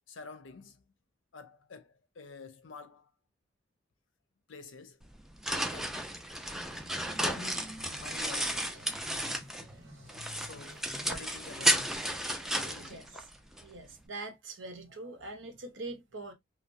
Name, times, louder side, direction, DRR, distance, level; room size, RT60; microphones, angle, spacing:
voice 1, 0.1-0.8 1.3-3.1 4.5-5.0 5.5-6.1 7.2-8.7 10.4-12.0 12.5-13.2, left 4 dB, 75° left, 0.6 m, -48 dB
sound 1, 5.0-9.7 10.1-13.6, right 1 dB, ahead, 0.3 m, -33 dB
sound 2, 6.7-12.1, equal, 85° right, 1.1 m, -51 dB
voice 2, 13.6-16.3, right 2 dB, 70° right, 0.7 m, -43 dB
2.9 x 2.0 x 2.5 m
head